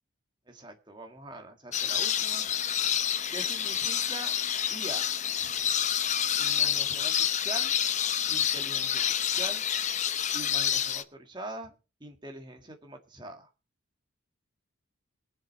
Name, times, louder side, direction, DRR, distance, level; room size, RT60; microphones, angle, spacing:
voice 1, 0.5-2.5 3.3-4.3 4.7-5.5 6.4-7.7 8.3-9.6 10.3-11.7 12.0-13.5, right 1 dB, 20° right, 4 dB, 1.8 m, -43 dB
sound 1, 1.7-11.0, left 9 dB, 35° left, 0.7 m, -28 dB
22.5 x 7.6 x 4.2 m, 0.31 s
head